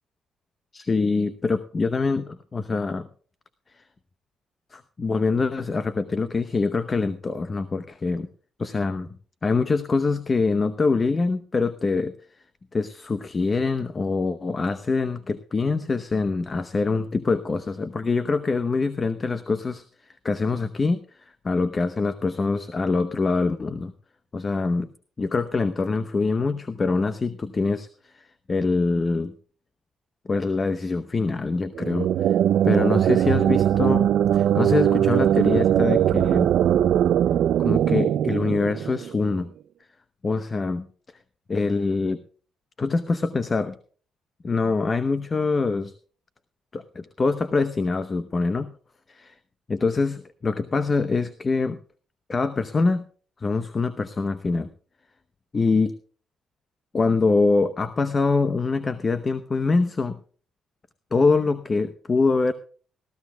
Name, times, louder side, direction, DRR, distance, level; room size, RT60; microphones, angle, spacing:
voice 1, 0.7-3.1 3.7-3.8 4.7-8.3 8.6-9.2 9.4-12.1 12.7-19.8 20.2-23.9 24.3-24.9 25.2-29.3 30.3-32.4 32.6-36.5 37.6-39.5 40.2-40.9 41.5-42.2 42.8-43.7 44.4-45.9 46.7-48.7 49.1-49.3 49.7-51.8 52.3-53.0 53.4-54.7 55.5-55.9 56.9-60.2 61.1-62.5, left 4 dB, 30° left, 12 dB, 0.8 m, -24 dB
sound 1, 31.8-39.4, right 10 dB, 75° right, 0.5 m, -20 dB
19.0 x 14.5 x 2.3 m, 0.41 s
cardioid pair, 90°, 0 cm